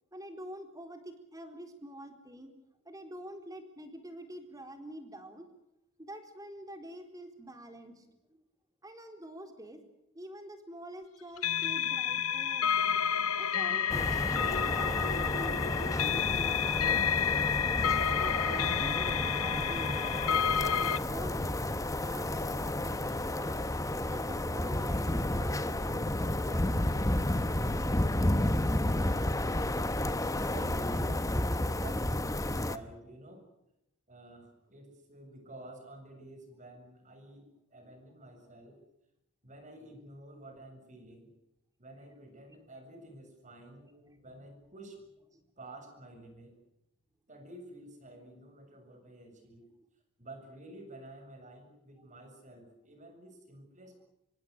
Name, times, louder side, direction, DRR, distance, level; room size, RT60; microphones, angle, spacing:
voice 1, 0.1-2.6 2.8-5.5 6.0-8.4 8.8-9.8 10.1-12.7 13.4-17.4 18.2-19.9 20.3-21.6 22.0-23.5 23.9-27.8 37.7-38.0 41.9-42.6 43.7-44.8 45.2-45.8, right 1 dB, 15° right, 6 dB, 4.0 m, -47 dB
sound 1, 11.4-21.0, left 8 dB, 90° left, 0.9 m, -30 dB
sound 2, 13.9-32.8, left 1 dB, 15° left, 1.1 m, -31 dB
voice 2, 30.4-33.4 34.1-38.8 39.4-41.3 41.8-45.0 45.6-46.6 47.3-49.7 50.2-54.0, right 1 dB, 35° right, 6 dB, 7.4 m, -49 dB
26.5 x 23.5 x 6.7 m, 0.86 s
head